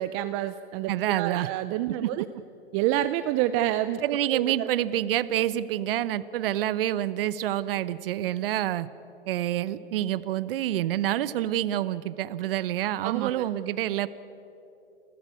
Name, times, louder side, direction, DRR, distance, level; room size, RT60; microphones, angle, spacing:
voice 1, 0.0-2.3 2.7-4.0 4.3-4.7 13.0-13.5, right 13 dB, 30° right, 13 dB, 0.5 m, -28 dB
voice 2, 0.9-1.5 2.0-2.1 4.0-8.9 9.3-14.1, right 13 dB, 60° right, 17 dB, 0.8 m, -27 dB
29.0 x 13.0 x 8.2 m, 2.9 s
hypercardioid pair, 130°, 31 cm